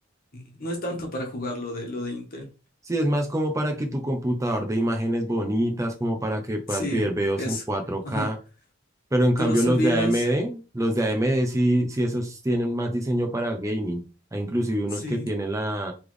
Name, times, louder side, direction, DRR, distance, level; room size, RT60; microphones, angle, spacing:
voice 1, 0.3-2.5 6.7-7.1 7.4-7.6 8.0-8.3 9.4-10.3 15.0-15.3, left 1 dB, 45° left, 2 dB, 1.4 m, -30 dB
voice 2, 2.9-8.4 9.1-14.0 14.3-15.9, right 1 dB, 15° right, 3 dB, 0.6 m, -25 dB
4.0 x 3.4 x 3.2 m, 0.32 s
head